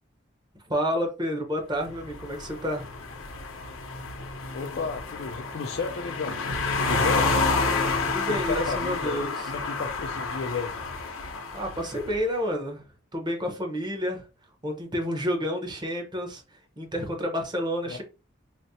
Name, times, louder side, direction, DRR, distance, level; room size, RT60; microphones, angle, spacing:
voice 1, 0.7-2.9 8.0-9.3 11.5-12.8 13.1-14.2 14.6-16.4 16.8-18.0, equal, 20° right, 0.8 m, -29 dB
sound 1, 1.9-12.2, left 3 dB, 85° left, 0.7 m, -29 dB
voice 2, 4.5-6.4 6.7-7.4 8.3-10.7 17.9-18.0, left 4 dB, 55° left, 0.4 m, -33 dB
5.0 x 2.0 x 2.7 m
head